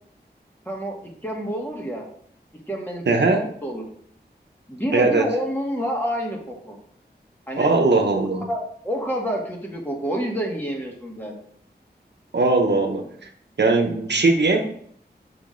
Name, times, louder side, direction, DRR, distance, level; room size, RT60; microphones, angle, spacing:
voice 1, 0.7-1.0 1.2-2.0 2.7-3.0 3.3-3.8 4.7-6.8 7.5-7.7 8.5-11.3, equal, 10° left, -1 dB, 1.7 m, -28 dB
voice 2, 3.1-3.5 4.9-5.3 7.6-8.5 12.3-13.1 13.6-14.6, right 3 dB, 75° right, 3 dB, 0.9 m, -19 dB
6.1 x 5.2 x 3.8 m, 0.64 s
wide cardioid pair, 65°, 18 cm